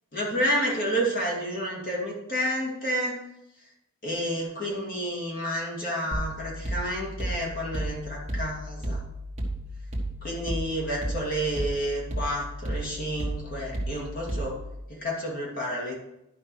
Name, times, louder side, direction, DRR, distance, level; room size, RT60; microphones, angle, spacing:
voice 1, 0.1-3.2 4.0-9.0 10.2-14.6 14.9-16.0, equal, 40° left, -3 dB, 2.4 m, -30 dB
sound 1, 6.1-14.8, right 1 dB, 30° right, 1.5 m, -33 dB
11.0 x 5.3 x 4.7 m, 0.86 s
head